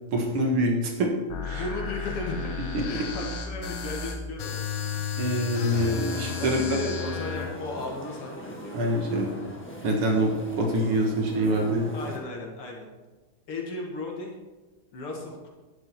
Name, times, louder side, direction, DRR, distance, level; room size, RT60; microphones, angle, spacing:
voice 1, 0.1-1.1 1.4-1.6 2.7-2.8 5.2-6.6 8.7-9.3 9.8-11.9, right 1 dB, 80° right, 2 dB, 2.4 m, -25 dB
sound 1, 1.3-7.5, left 6 dB, 65° left, 1.9 m, -33 dB
voice 2, 1.5-2.5 2.9-5.2 6.4-8.8 11.9-12.9 13.5-14.3 14.9-15.5, left 2 dB, 85° left, -1 dB, 3.0 m, -36 dB
sound 2, 5.6-12.2, equal, 5° left, 1.3 m, -41 dB
11.5 x 10.5 x 4.5 m, 1.2 s
omnidirectional pair, 2.4 m